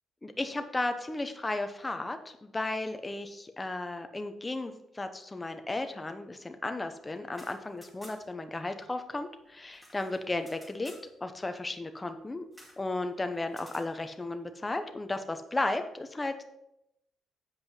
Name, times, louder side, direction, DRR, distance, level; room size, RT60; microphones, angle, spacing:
voice 1, 0.2-10.9 11.2-12.4 12.8-16.4, left 2 dB, 20° left, 7 dB, 0.9 m, -34 dB
sound 1, 7.2-8.5 8.7-8.8 9.1-11.1 12.5-12.8 13.5-13.9, equal, 5° right, 2.4 m, -53 dB
7.8 x 5.2 x 5.6 m, 0.83 s
cardioid pair, 90°, 0 cm